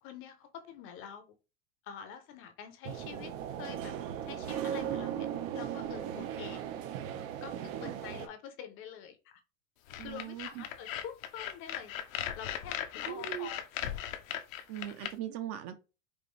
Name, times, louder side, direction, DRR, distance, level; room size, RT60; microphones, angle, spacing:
voice 1, 0.0-1.3 1.8-3.9 4.2-5.3 5.5-6.6 7.4-9.4 10.0-12.1 12.4-13.7, left 8 dB, 30° left, 0.6 m, -46 dB
sound 1, 2.8-8.3, right 9 dB, 75° right, 0.8 m, -37 dB
sound 2, 9.9-15.1, left 11 dB, 80° left, 0.9 m, -38 dB
voice 2, 10.0-10.6 13.0-13.5 14.7-15.8, right 11 dB, 40° right, 0.6 m, -40 dB
5.3 x 2.6 x 3.2 m
supercardioid pair, 155°, 40 cm